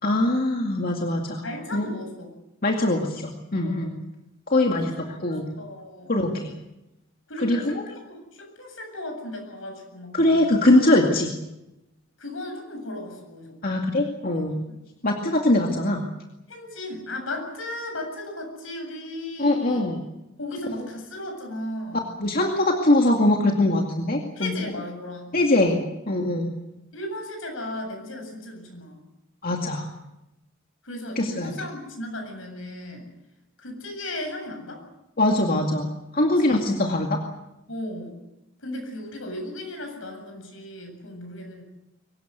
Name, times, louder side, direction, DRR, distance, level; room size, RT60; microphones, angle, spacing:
voice 1, 0.0-1.4 1.7-1.9 2.6-3.9 4.5-4.9 5.2-5.5 6.1-6.5 7.4-7.9 10.1-11.3 13.6-14.6 15.0-16.0 19.4-20.0 22.2-24.5 25.3-25.8 26.1-26.5 29.4-29.9 31.2-31.5 35.2-37.2, left 1 dB, 45° left, 1 dB, 2.3 m, -22 dB
voice 2, 1.4-2.3 3.6-3.9 4.5-6.2 7.3-10.5 12.2-13.6 14.7-14.8 16.5-19.9 20.4-22.0 24.4-25.3 26.9-29.0 30.8-33.0 33.6-34.8 36.3-36.6 37.7-38.1 38.6-41.6, left 1 dB, 75° left, 4 dB, 8.0 m, -36 dB
23.5 x 19.5 x 8.0 m, 0.93 s
head